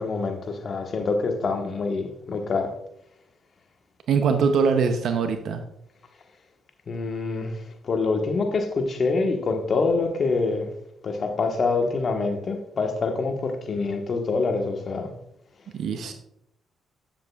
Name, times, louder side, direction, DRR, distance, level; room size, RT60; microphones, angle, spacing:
voice 1, 0.0-2.7 6.9-7.5 7.8-10.7 11.0-15.1, left 3 dB, 55° left, 4 dB, 1.3 m, -25 dB
voice 2, 4.1-5.6 15.7-16.1, right 5 dB, 70° right, 7 dB, 0.7 m, -22 dB
9.1 x 7.6 x 2.4 m, 0.76 s
supercardioid pair, 60°, 0 cm